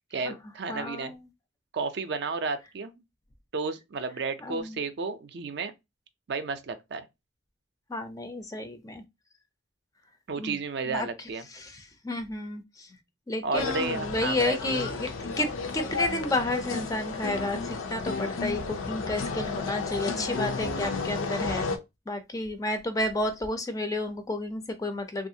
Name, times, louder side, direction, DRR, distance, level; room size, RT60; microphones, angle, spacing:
voice 1, 0.1-1.1 1.7-3.0 3.5-5.7 6.3-7.0 10.3-11.4 13.4-14.8, right 4 dB, 55° right, 0.4 m, -32 dB
voice 2, 0.7-1.2 4.4-4.8 7.9-9.0 10.4-10.6 10.9-11.1 11.5-13.0 13.3-21.7 22.1-25.3, left 1 dB, 15° left, 0.4 m, -31 dB
sound 1, 13.5-21.8, left 4 dB, 85° left, 0.5 m, -32 dB
3.1 x 2.4 x 2.7 m
head